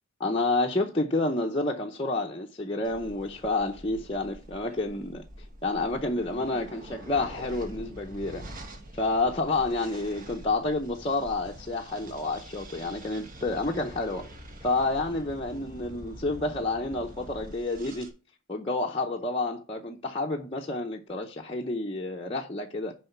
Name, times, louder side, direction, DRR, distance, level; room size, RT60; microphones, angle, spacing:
voice 1, 0.2-5.2 5.6-8.7 9.0-14.3 14.6-18.1 18.5-22.9, left 2 dB, 25° left, 0.7 m, -29 dB
sound 1, 2.8-18.1, right 1 dB, 40° right, 1.2 m, -45 dB
6.9 x 4.9 x 5.7 m
head